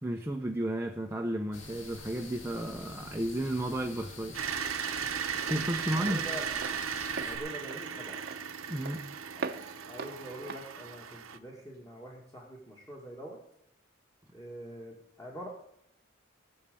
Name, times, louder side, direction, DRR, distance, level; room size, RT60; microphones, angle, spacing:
voice 1, 0.0-4.7 5.5-6.2 8.7-9.0, right 1 dB, 10° right, 3 dB, 0.7 m, -33 dB
sound 1, 1.5-7.4, left 3 dB, 65° left, 2.1 m, -47 dB
Walk footsteps, 3.2-11.9, right 4 dB, 50° right, 0.8 m, -44 dB
sound 2, 4.3-11.4, right 7 dB, 85° right, 1.0 m, -36 dB
voice 2, 5.9-6.5 7.2-8.2 9.4-9.5 9.9-13.4 14.3-15.5, equal, 15° left, -2 dB, 2.3 m, -44 dB
19.0 x 6.5 x 7.0 m, 0.74 s
head